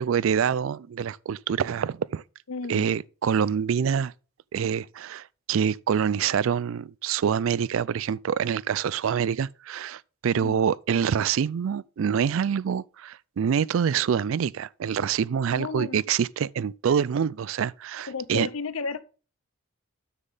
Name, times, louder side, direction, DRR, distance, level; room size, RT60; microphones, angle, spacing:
voice 1, 0.0-2.2 2.7-4.1 4.5-18.5, right 7 dB, 65° right, 0.3 m, -26 dB
voice 2, 2.5-2.9 10.3-10.6 15.6-16.0 18.1-19.0, left 4 dB, 75° left, 0.8 m, -33 dB
9.8 x 7.4 x 3.8 m
head